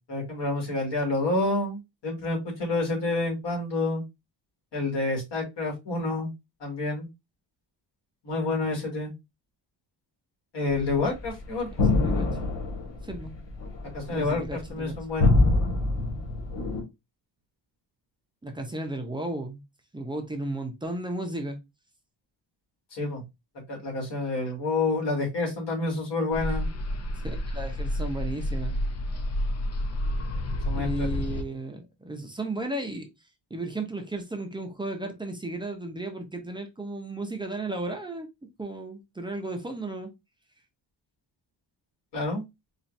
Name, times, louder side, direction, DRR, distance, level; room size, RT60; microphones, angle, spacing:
voice 1, 0.1-4.0 4.7-6.3 6.6-7.1 8.2-9.1 10.5-11.9 13.9-15.3 22.9-23.2 23.7-26.7 30.6-31.1 42.1-42.4, left 2 dB, 65° left, 2.2 m, -28 dB
sound 1, 10.7-16.8, left 2 dB, 85° left, 1.7 m, -25 dB
voice 2, 12.0-12.3 13.0-13.3 14.1-15.0 18.4-19.6 19.9-21.6 27.2-28.7 30.7-33.1 33.5-38.3 38.6-40.1, right 2 dB, 10° right, 0.6 m, -34 dB
sound 2, 26.3-31.4, left 1 dB, 35° left, 0.4 m, -30 dB
4.3 x 2.4 x 2.6 m
cardioid pair, 140°, 44 cm